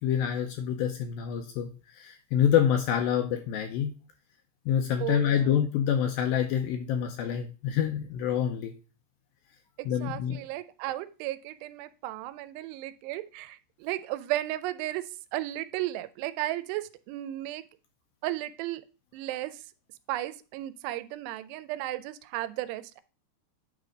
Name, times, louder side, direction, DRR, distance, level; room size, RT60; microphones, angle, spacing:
voice 1, 0.0-3.9 4.7-8.7 9.9-10.4, left 9 dB, 80° left, 5 dB, 2.2 m, -27 dB
voice 2, 5.0-5.4 9.8-15.0 15.3-17.6 18.2-18.8 19.1-19.6 20.1-23.0, right 15 dB, 85° right, 14 dB, 2.7 m, -34 dB
9.1 x 3.3 x 5.0 m, 0.34 s
omnidirectional pair, 4.8 m